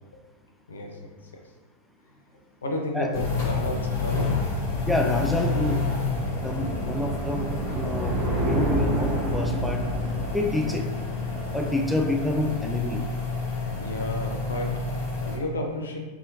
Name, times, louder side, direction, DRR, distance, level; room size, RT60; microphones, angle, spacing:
voice 1, 0.7-1.5 2.1-2.2 2.6-4.6 13.8-16.0, left 1 dB, 70° left, 2 dB, 0.4 m, -32 dB
sound 1, 3.1-15.4, left 3 dB, 50° left, 0.9 m, -29 dB
voice 2, 4.9-5.8 6.4-9.8 10.3-10.8 11.5-13.0, left 1 dB, ahead, 1 dB, 0.3 m, -28 dB
sound 2, 5.4-12.1, right 1 dB, 25° right, 0.8 m, -31 dB
2.7 x 2.7 x 2.4 m, 1.3 s
figure-of-eight pair, 90°, 0 cm